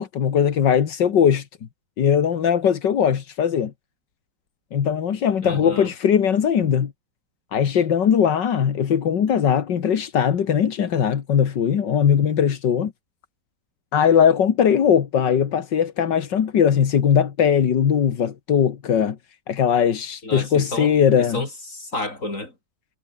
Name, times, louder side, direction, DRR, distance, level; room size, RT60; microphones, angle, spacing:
voice 1, 0.0-1.5 2.0-3.7 4.7-6.9 7.5-12.9 13.9-19.2 19.5-21.5, left 8 dB, 90° left, 2.2 m, -20 dB
voice 2, 5.4-5.9 20.2-20.9 21.2-22.5, left 2 dB, 45° left, 7.0 m, -30 dB
omnidirectional pair, 1.9 m